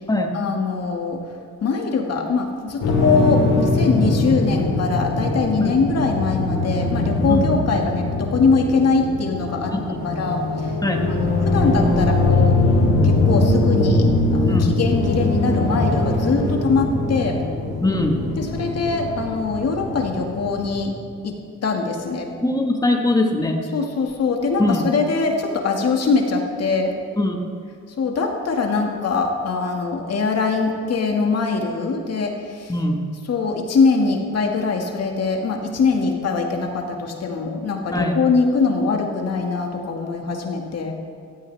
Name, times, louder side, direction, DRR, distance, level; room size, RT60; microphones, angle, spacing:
voice 1, 0.3-1.2 1.6-9.7 10.0-10.8 11.2-12.6 13.0-17.4 18.4-20.9 21.2-21.3 21.6-22.3 23.7-26.9 28.0-32.7 33.3-40.9, left 4 dB, 55° left, 2 dB, 2.2 m, -22 dB
sound 1, 2.8-20.8, left 2 dB, 75° left, 4.3 m, -21 dB
voice 2, 9.7-10.1 10.8-11.0 14.5-14.7 17.8-18.2 22.4-23.6 24.6-24.9 27.2-27.5 32.7-33.0 37.9-38.2, left 2 dB, 10° left, 2 dB, 1.8 m, -21 dB
16.5 x 15.0 x 3.6 m, 2.2 s
cardioid pair, 90°, 30 cm